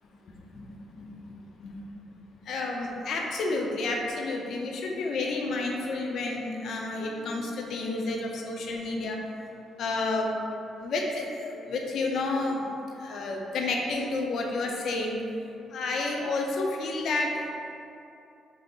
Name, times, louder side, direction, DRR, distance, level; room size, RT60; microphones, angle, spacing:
voice 1, 1.0-1.3 1.6-1.7 2.5-9.2 9.8-10.4 10.8-12.6 13.0-15.2 15.7-17.5, left 2 dB, 65° left, 0 dB, 0.5 m, -30 dB
3.8 x 2.0 x 3.6 m, 2.6 s
cardioid pair, 90°, 0 cm